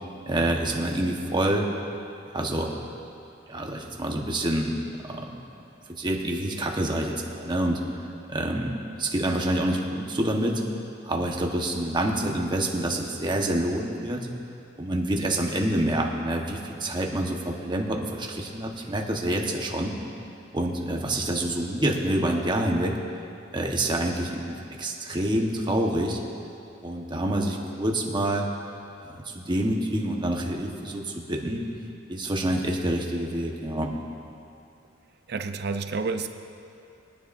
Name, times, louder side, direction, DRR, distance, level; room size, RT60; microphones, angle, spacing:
voice 1, 0.3-1.7 2.3-2.7 3.5-5.3 5.9-7.8 8.3-10.6 11.1-14.3 14.8-19.9 20.5-22.9 23.5-26.2 26.8-28.5 29.0-31.6 32.1-33.9, right 1 dB, 25° right, 0 dB, 1.2 m, -27 dB
voice 2, 35.3-36.3, right 4 dB, 55° right, 8 dB, 0.6 m, -29 dB
22.5 x 10.0 x 2.6 m, 2.6 s
head